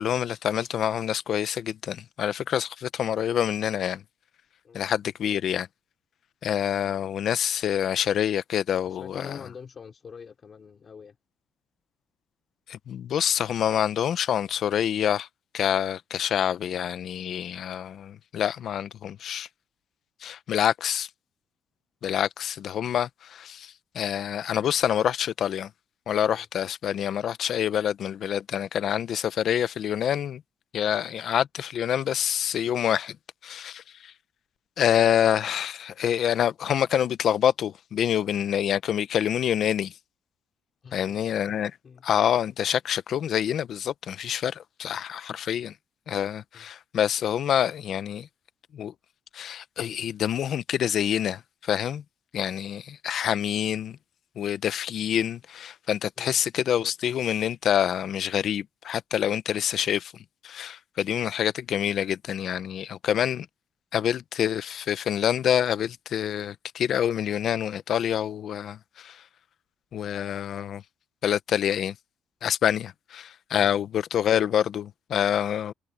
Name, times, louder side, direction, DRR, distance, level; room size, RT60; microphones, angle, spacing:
voice 1, 0.0-4.0 4.7-5.7 6.4-9.4 12.7-15.3 15.5-19.5 20.2-21.1 22.0-25.7 26.1-30.4 30.7-33.2 33.4-34.1 34.8-39.9 40.9-41.8 42.0-45.7 46.1-48.3 48.7-48.9 49.3-52.0 52.3-54.0 54.4-60.1 60.4-63.5 63.9-69.2 69.9-70.8 71.2-71.9 72.4-75.7, left 9 dB, 50° left, 0.7 m, -26 dB
voice 2, 8.8-11.2 26.3-26.5 40.8-41.2 41.8-42.0 46.5-46.7 56.2-56.4, left 6 dB, 30° left, 3.0 m, -45 dB
cardioid pair, 160°, 0 cm